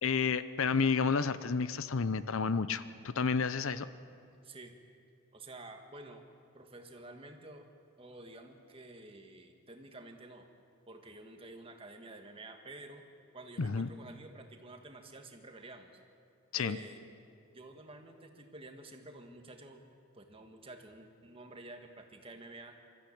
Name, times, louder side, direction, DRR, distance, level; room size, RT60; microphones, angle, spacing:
voice 1, 0.0-2.8 3.2-3.9 13.6-13.9 16.5-16.8, left 5 dB, 70° left, 14 dB, 0.6 m, -30 dB
voice 2, 4.4-4.7 5.3-6.2 6.5-7.7 8.0-10.5 10.9-13.0 13.3-15.9 16.5-17.0 17.5-19.8 20.1-22.7, right 2 dB, 25° right, 4 dB, 1.6 m, -50 dB
25.0 x 13.5 x 8.6 m, 2.5 s
head